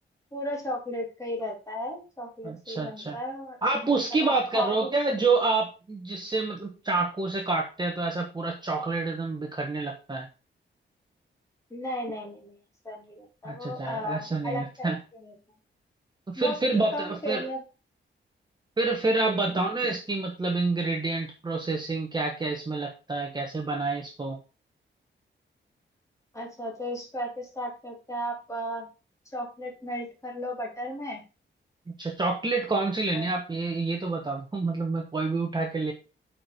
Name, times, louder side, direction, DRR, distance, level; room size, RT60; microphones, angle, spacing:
voice 1, 0.3-3.6 4.1-4.9 11.7-12.6 12.8-15.3 16.4-17.6 19.2-19.6 26.3-28.9 29.3-31.2 33.1-33.3, equal, 15° left, -1 dB, 2.9 m, -35 dB
voice 2, 2.4-3.2 3.6-10.3 13.4-15.0 16.3-17.5 18.8-24.4 31.9-35.9, right 3 dB, 20° right, 1 dB, 1.2 m, -28 dB
8.7 x 4.6 x 5.1 m, 0.32 s
wide cardioid pair, 145°, 20 cm